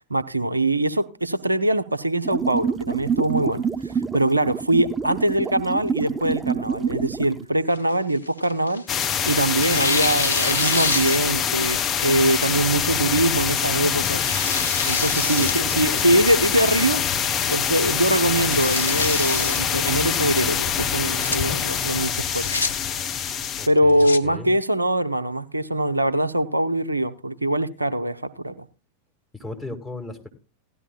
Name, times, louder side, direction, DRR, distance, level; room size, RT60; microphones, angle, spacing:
voice 1, 0.1-8.8 9.3-14.2 14.9-22.4 23.7-28.7, right 1 dB, 80° right, 0.6 m, -23 dB
sound 1, 2.2-7.4, right 6 dB, 15° right, 0.5 m, -27 dB
Tearing, 7.7-9.0 9.5-11.5 12.0-12.1 13.0-13.3 13.8-15.6 16.0-16.1 16.7-17.1 17.4-17.5 17.8-17.9 18.3-19.6 20.9-21.4 22.2-22.7 23.7-24.2, left 3 dB, 80° left, 0.8 m, -28 dB
sound 2, 8.9-23.7, left 8 dB, 30° left, 1.2 m, -24 dB
voice 2, 15.3-16.2 23.6-24.5 29.3-30.3, left 2 dB, ahead, 2.1 m, -37 dB
16.5 x 12.0 x 2.4 m
figure-of-eight pair, 90°, 0 cm